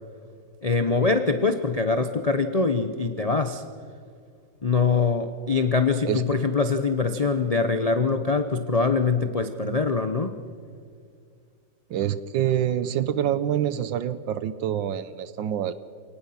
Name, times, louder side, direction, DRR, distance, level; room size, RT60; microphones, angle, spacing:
voice 1, 0.6-3.6 4.6-10.4, left 4 dB, 60° left, 7 dB, 0.3 m, -23 dB
voice 2, 11.9-15.7, right 10 dB, 70° right, 14 dB, 1.4 m, -26 dB
28.0 x 18.5 x 5.8 m, 2.1 s
omnidirectional pair, 2.2 m